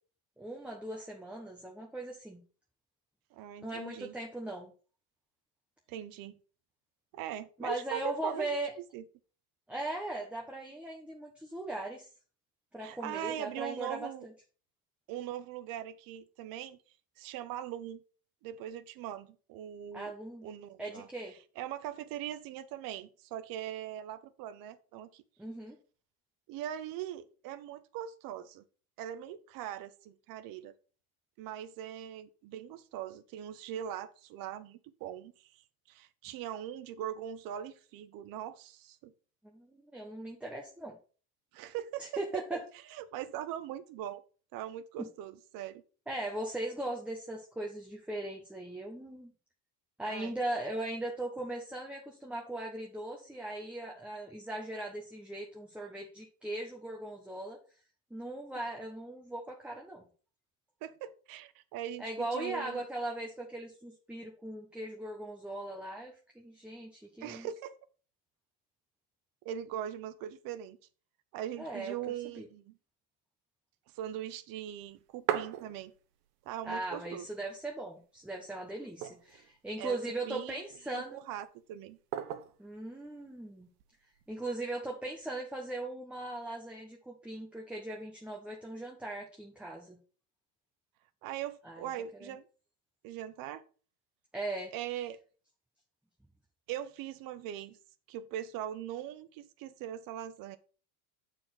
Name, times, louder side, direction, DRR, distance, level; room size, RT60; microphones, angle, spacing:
voice 1, 0.4-2.4 3.6-4.7 7.6-8.7 9.7-12.1 12.7-14.1 19.9-20.5 20.8-21.3 25.4-25.8 39.4-41.0 42.0-42.6 45.0-45.1 46.1-49.3 50.0-57.6 58.1-60.1 62.0-67.5 71.5-72.5 76.6-81.2 82.6-83.7 84.3-90.0 91.6-91.9 92.2-92.3 94.3-94.7, right 1 dB, 5° right, 1.2 m, -39 dB
voice 2, 3.3-4.1 5.9-6.4 7.1-8.6 8.9-9.0 12.8-14.3 15.1-16.8 17.2-18.0 18.4-20.1 20.4-21.1 21.6-25.2 26.5-28.6 29.0-30.7 31.4-35.6 35.9-39.1 41.5-42.6 42.9-44.2 44.5-45.8 50.0-50.3 60.8-62.8 67.2-67.8 69.4-70.8 71.3-72.8 73.9-75.9 76.5-77.3 79.0-79.1 79.8-80.0 80.3-80.6 80.9-82.0 91.2-92.5 93.0-93.6 94.7-95.2 96.7-97.8 98.1-100.6, right 11 dB, 50° right, 1.0 m, -41 dB
sound 1, 74.8-76.3 76.6-76.7 76.9-77.7 78.2-78.3 78.8-79.6 80.3-80.9 82.1-82.7 83.8-84.3, right 11 dB, 80° right, 1.0 m, -38 dB
7.5 x 4.6 x 5.9 m
supercardioid pair, 135°, 45 cm